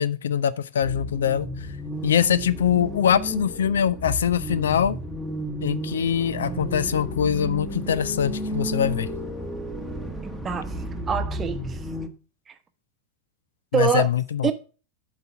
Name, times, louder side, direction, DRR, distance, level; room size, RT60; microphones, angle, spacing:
voice 1, 0.0-1.7 2.0-5.0 5.6-9.1 13.7-14.5, left 8 dB, 65° left, 0.4 m, -23 dB
sound 1, 0.8-12.1, equal, 5° left, 1.2 m, -32 dB
voice 2, 10.2-10.7 11.1-11.8 12.5-12.6 13.7-14.1 14.4-14.5, right 7 dB, 20° right, 0.9 m, -25 dB
7.8 x 4.1 x 5.6 m
figure-of-eight pair, 90°, 0 cm